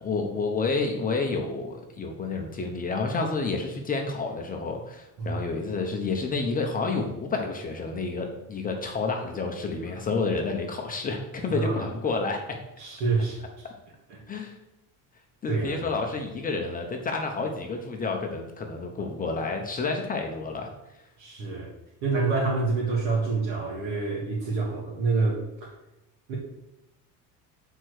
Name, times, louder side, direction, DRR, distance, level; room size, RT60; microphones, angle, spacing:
voice 1, 0.0-12.6 14.3-14.5 15.4-20.7, left 3 dB, 20° left, 2 dB, 0.8 m, -29 dB
voice 2, 11.5-11.9 12.8-13.7 14.1-14.2 15.5-15.8 21.2-21.7 22.0-25.7 26.3-26.4, right 3 dB, 60° right, -5 dB, 2.0 m, -27 dB
6.5 x 4.5 x 6.4 m, 0.94 s
cardioid pair, 155°, 41 cm